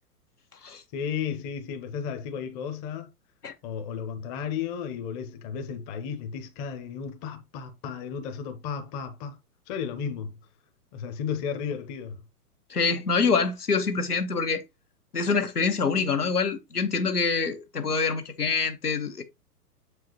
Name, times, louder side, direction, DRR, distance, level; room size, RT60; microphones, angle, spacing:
voice 1, 0.9-3.1 3.6-9.4 9.7-10.4 10.9-12.2, left 7 dB, 25° left, 0.9 m, -33 dB
voice 2, 12.7-14.6 15.1-19.2, left 4 dB, 75° left, 1.3 m, -25 dB
7.4 x 4.8 x 3.0 m
figure-of-eight pair, 110°, 47 cm